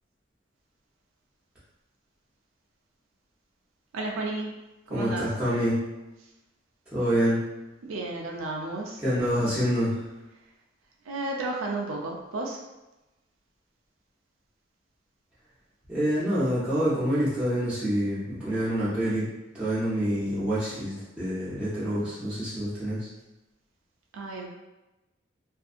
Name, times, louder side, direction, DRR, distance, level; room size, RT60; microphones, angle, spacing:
voice 1, 3.9-4.6 4.9-5.3 7.8-9.0 11.1-12.6 24.1-24.5, right 2 dB, 85° right, -1 dB, 0.4 m, -32 dB
voice 2, 4.9-5.8 6.9-7.4 9.0-9.9 15.9-19.3 19.5-23.1, equal, 5° right, -12 dB, 0.9 m, -26 dB
2.6 x 2.4 x 2.5 m, 1.0 s
head